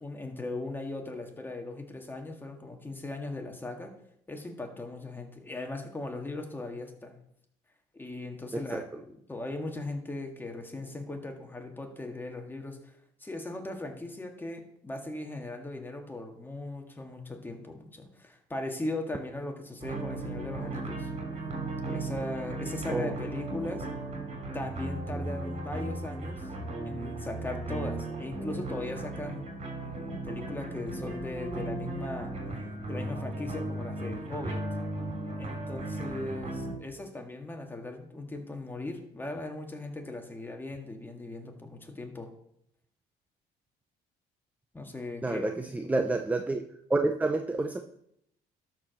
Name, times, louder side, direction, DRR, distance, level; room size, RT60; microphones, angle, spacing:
voice 1, 0.0-3.9 4.3-7.2 7.9-12.8 13.2-21.1 21.9-23.9 24.5-26.5 26.8-29.5 29.8-32.3 32.9-34.6 35.4-42.3 44.7-45.5, left 2 dB, 10° left, 3 dB, 1.8 m, -38 dB
sound 1, 19.8-36.7, right 2 dB, 40° right, 3.3 m, -36 dB
voice 2, 45.2-47.8, right 2 dB, 10° right, 6 dB, 0.6 m, -29 dB
12.0 x 4.7 x 6.4 m, 0.74 s
cardioid pair, 110°, 17 cm